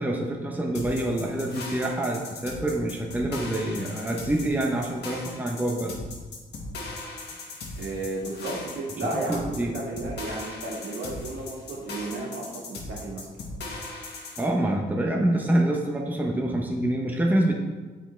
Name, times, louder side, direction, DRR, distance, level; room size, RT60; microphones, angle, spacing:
voice 1, 0.0-6.0 9.3-9.7 14.4-17.5, right 1 dB, 10° right, 0 dB, 0.9 m, -26 dB
sound 1, 0.7-14.5, left 2 dB, 55° left, 1.6 m, -38 dB
voice 2, 7.8-13.3, right 2 dB, 70° right, -4 dB, 2.2 m, -33 dB
7.7 x 4.9 x 4.5 m, 1.4 s
cardioid pair, 90°, 20 cm